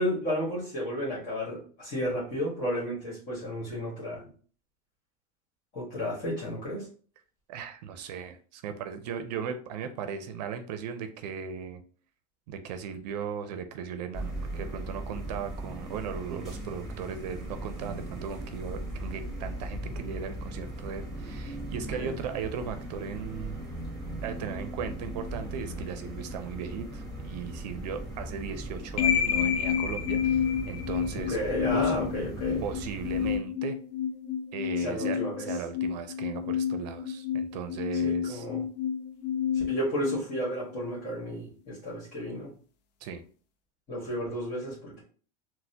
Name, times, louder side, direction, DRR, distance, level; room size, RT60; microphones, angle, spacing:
voice 1, 0.0-4.2 5.7-6.9 22.0-22.1 31.3-32.6 34.8-35.4 38.0-38.6 39.5-42.5 43.9-45.0, equal, 40° left, -5 dB, 1.4 m, -32 dB
voice 2, 7.5-11.8 12.5-23.6 24.2-31.4 31.7-31.9 32.6-33.8 34.5-38.5 43.0-43.2, right 7 dB, 80° right, 8 dB, 0.5 m, -37 dB
sound 1, 14.1-33.4, right 1 dB, ahead, 1.5 m, -38 dB
sound 2, 29.0-41.0, left 8 dB, 85° left, 0.5 m, -30 dB
4.0 x 2.1 x 2.7 m, 0.41 s
supercardioid pair, 120°, 21 cm